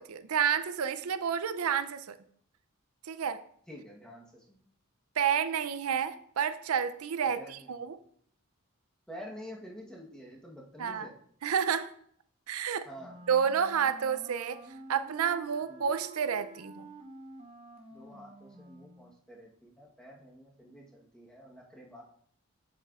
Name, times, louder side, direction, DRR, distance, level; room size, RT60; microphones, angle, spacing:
voice 1, 0.0-2.2 3.1-3.4 5.2-8.0 10.8-11.1 11.4-11.9 12.5-12.9 13.3-14.6 14.9-16.9, right 7 dB, 85° right, 12 dB, 0.5 m, -30 dB
voice 2, 3.7-4.6 7.3-7.8 9.1-11.2 12.8-13.2 15.7-15.8 17.9-22.0, equal, 5° left, -3 dB, 1.1 m, -48 dB
Wind instrument woodwind instrument, 13.0-19.2, right 2 dB, 25° right, 0.8 m, -50 dB
7.5 x 7.5 x 2.4 m, 0.63 s
head